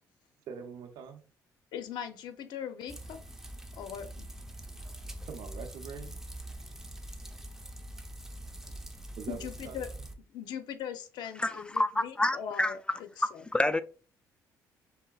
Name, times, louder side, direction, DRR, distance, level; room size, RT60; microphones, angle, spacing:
voice 1, 0.5-1.2 5.3-6.2 9.2-9.8, right 6 dB, 70° right, 0.6 m, -43 dB
voice 2, 1.7-3.2 3.8-4.2 9.3-9.9 10.3-12.8 13.2-13.4, left 8 dB, 75° left, 0.7 m, -40 dB
sound 1, 2.9-10.1, right 1 dB, 5° right, 0.8 m, -44 dB
voice 3, 11.4-12.7 13.5-13.8, left 1 dB, 15° left, 0.3 m, -28 dB
5.5 x 3.4 x 2.3 m
cardioid pair, 90°, 7 cm